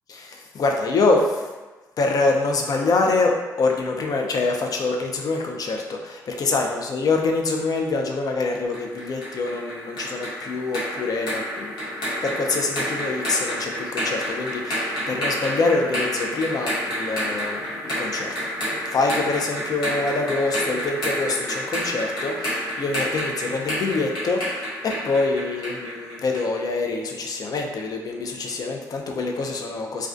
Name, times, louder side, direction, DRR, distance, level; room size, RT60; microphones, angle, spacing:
voice 1, 0.1-1.5 2.0-11.7 12.2-18.5 18.9-30.1, left 3 dB, 55° left, 2 dB, 0.4 m, -25 dB
sound 1, 8.7-26.5, equal, 80° left, 0.9 m, -29 dB
2.2 x 2.2 x 2.5 m, 1.2 s
supercardioid pair, 55°, 8 cm